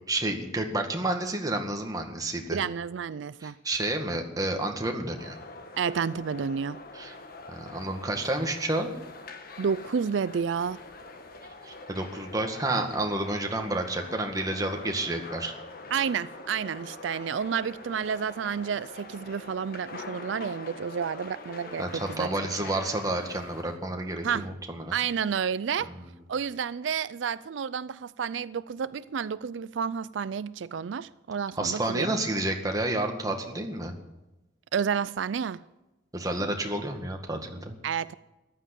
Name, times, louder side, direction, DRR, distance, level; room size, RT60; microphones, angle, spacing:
voice 1, 0.1-2.6 3.4-5.4 6.9-7.1 7.5-8.9 11.6-15.5 21.8-24.9 25.9-26.1 31.6-33.9 36.1-37.8, right 2 dB, 20° right, 1.9 m, -30 dB
voice 2, 2.5-3.6 5.8-6.8 9.6-10.8 15.9-22.3 24.2-24.5 24.9-25.9 26.3-32.1 34.7-35.6 37.8-38.1, right 7 dB, 90° right, 0.4 m, -30 dB
sound 1, 5.2-23.8, left 3 dB, 55° left, 1.5 m, -44 dB
14.5 x 11.5 x 8.3 m
head